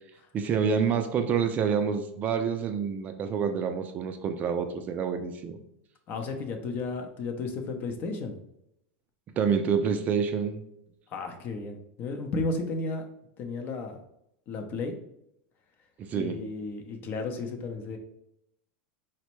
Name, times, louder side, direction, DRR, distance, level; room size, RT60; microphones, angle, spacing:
voice 1, 0.3-5.6 9.4-10.6 16.0-16.4, right 6 dB, 30° right, 7 dB, 0.3 m, -27 dB
voice 2, 6.1-8.4 11.1-13.0 13.4-14.0 14.5-14.9 16.1-18.0, left 3 dB, 40° left, 5 dB, 0.6 m, -33 dB
4.1 x 2.1 x 3.0 m, 0.79 s
supercardioid pair, 135°, 5 cm